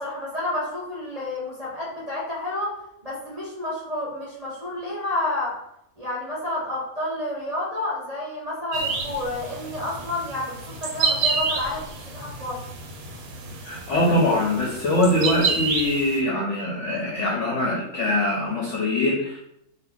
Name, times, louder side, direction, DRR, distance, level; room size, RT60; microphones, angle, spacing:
voice 1, 0.0-2.7 3.0-5.5 6.0-12.6, left 1 dB, 30° right, -8 dB, 0.7 m, -30 dB
sound 1, 8.7-16.2, right 4 dB, 70° right, 1.0 m, -29 dB
voice 2, 13.6-19.4, left 1 dB, 60° left, -3 dB, 0.8 m, -23 dB
2.8 x 2.2 x 3.4 m, 0.76 s
omnidirectional pair, 1.7 m